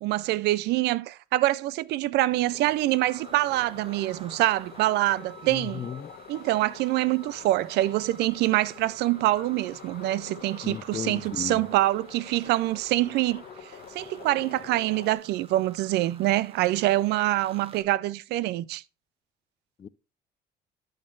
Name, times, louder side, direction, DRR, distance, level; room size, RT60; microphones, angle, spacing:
voice 1, 0.0-5.9 6.3-13.4 13.9-18.8, right 16 dB, 80° right, 0.4 m, -25 dB
sound 1, 2.1-2.2 2.4-17.8, right 5 dB, 35° right, 1.2 m, -51 dB
sound 2, 2.3-15.1, left 9 dB, 65° left, 1.1 m, -47 dB
voice 2, 5.5-6.1 10.6-11.6 19.8-19.9, left 7 dB, 25° left, 0.4 m, -35 dB
11.5 x 6.5 x 2.4 m
cardioid pair, 110°, 17 cm